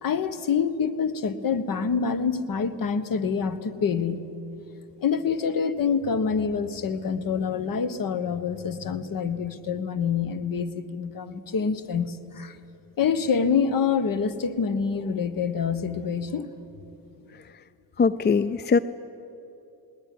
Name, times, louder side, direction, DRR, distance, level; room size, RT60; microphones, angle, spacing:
voice 1, 0.0-4.3 5.0-12.6 13.0-16.5, left 6 dB, 45° left, 14 dB, 1.4 m, -26 dB
voice 2, 18.0-18.8, left 5 dB, 25° left, 16 dB, 0.5 m, -21 dB
20.0 x 18.0 x 9.5 m, 2.9 s
supercardioid pair, 70°, 48 cm